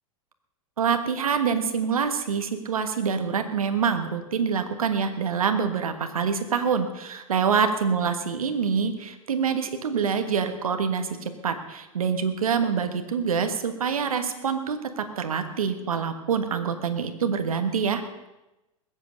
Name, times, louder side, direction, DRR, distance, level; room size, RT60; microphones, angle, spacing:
voice 1, 0.8-11.1 11.4-18.0, right 6 dB, 85° right, 8 dB, 1.4 m, -26 dB
20.5 x 8.1 x 6.5 m, 0.98 s
hypercardioid pair, 100°, 18 cm